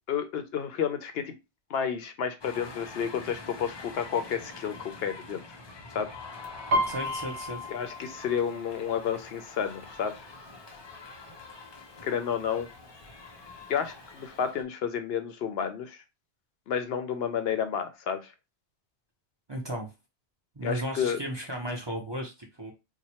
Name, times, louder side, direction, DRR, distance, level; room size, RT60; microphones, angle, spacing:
voice 1, 0.1-1.3 1.7-5.4 5.9-6.1 7.7-10.3 12.0-12.7 13.7-16.0 16.7-18.3 20.6-21.2, left 7 dB, 70° left, 9 dB, 0.8 m, -31 dB
sound 1, 2.4-14.6, left 3 dB, 35° left, 0.5 m, -45 dB
Piano, 6.7-10.4 10.7-11.1 11.5-12.1 12.7-12.8 13.0-14.0 14.4-14.5, equal, 60° right, 0.9 m, -33 dB
voice 2, 6.9-7.7 19.5-19.9 20.6-22.7, right 1 dB, 30° right, 1 dB, 0.6 m, -35 dB
3.0 x 2.2 x 4.2 m, 0.25 s
omnidirectional pair, 1.1 m